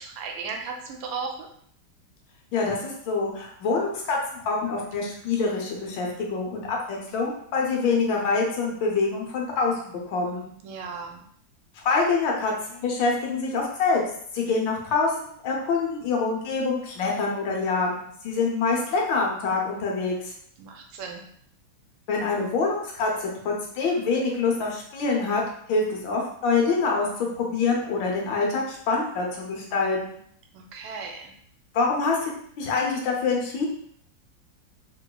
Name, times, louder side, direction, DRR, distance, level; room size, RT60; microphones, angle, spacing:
voice 1, 0.0-1.5 10.6-11.2 20.6-21.2 30.5-31.3, right 5 dB, 85° right, 2 dB, 1.4 m, -36 dB
voice 2, 2.5-10.4 11.8-14.0 14.3-15.1 15.4-20.3 22.1-25.4 25.7-30.2 31.7-33.7, left 4 dB, 75° left, -1 dB, 1.5 m, -25 dB
3.5 x 3.0 x 2.3 m, 0.64 s
omnidirectional pair, 2.1 m